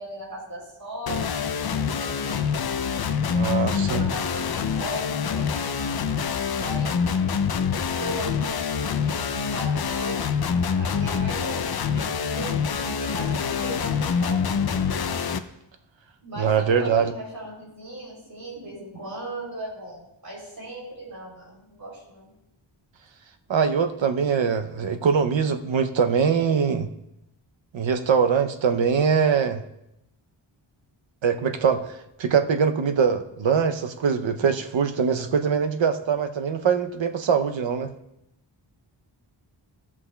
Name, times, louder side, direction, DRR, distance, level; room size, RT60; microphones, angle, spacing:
voice 1, 0.0-2.7 3.4-5.8 6.5-7.0 8.0-10.2 10.7-11.6 11.9-15.0 16.2-22.3, right 1 dB, 45° right, -4 dB, 3.2 m, -37 dB
sound 1, 1.1-15.4, left 6 dB, 55° left, 0.5 m, -26 dB
voice 2, 3.3-4.0 16.4-17.1 23.5-26.9 27.7-29.6 31.2-37.9, right 6 dB, 70° right, 8 dB, 0.7 m, -23 dB
16.0 x 6.1 x 2.2 m, 0.84 s
wide cardioid pair, 100°, 47 cm